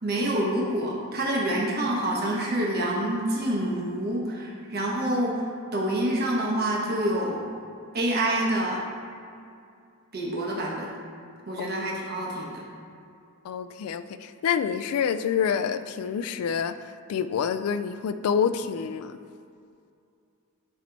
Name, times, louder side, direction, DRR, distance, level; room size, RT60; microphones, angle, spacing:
voice 1, 0.0-7.4 7.9-8.8 10.1-10.9 11.5-12.6, right 1 dB, 45° right, -3 dB, 1.2 m, -27 dB
voice 2, 13.4-19.2, left 7 dB, 85° left, 12 dB, 0.3 m, -27 dB
9.4 x 3.2 x 4.0 m, 2.4 s
head